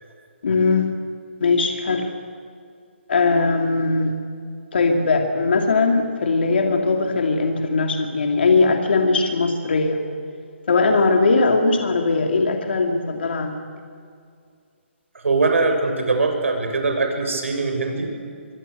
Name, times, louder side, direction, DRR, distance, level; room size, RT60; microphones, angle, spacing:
voice 1, 0.4-0.9 1.4-2.1 3.1-4.1 4.7-10.0 10.7-13.6, left 3 dB, 55° left, 3 dB, 2.7 m, -19 dB
voice 2, 15.2-18.1, right 3 dB, 80° right, 5 dB, 6.4 m, -21 dB
24.0 x 23.5 x 8.0 m, 2.2 s
hypercardioid pair, 170°, 7 cm